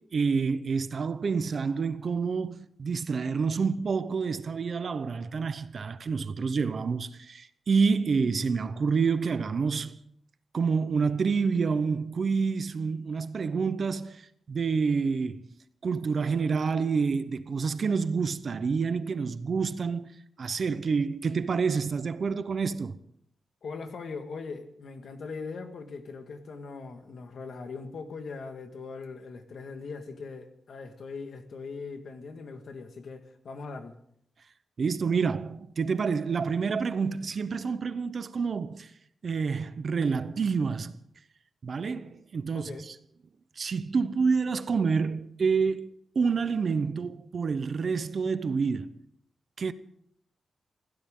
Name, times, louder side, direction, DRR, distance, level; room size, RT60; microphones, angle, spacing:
voice 1, 0.0-10.0 10.5-14.2 14.5-15.5 15.8-20.1 20.4-22.9 34.8-38.9 39.2-40.9 41.6-42.7 43.6-45.9 46.1-48.9 49.6-49.7, right 5 dB, 45° right, 0.8 m, -28 dB
voice 2, 23.6-34.0 42.5-42.9, left 4 dB, 55° left, 1.8 m, -40 dB
23.5 x 16.5 x 3.8 m
wide cardioid pair, 175°, 0 cm